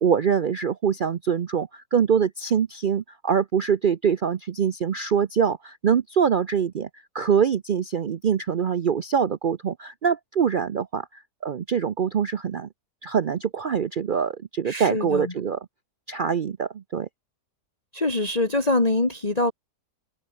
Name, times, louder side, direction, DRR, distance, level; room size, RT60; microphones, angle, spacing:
voice 1, 0.0-12.7 13.0-15.6 16.1-17.1, right 7 dB, 75° right, 0.4 m, -24 dB
voice 2, 14.7-15.3 17.9-19.5, left 2 dB, 25° left, 2.0 m, -24 dB
omnidirectional pair, 1.8 m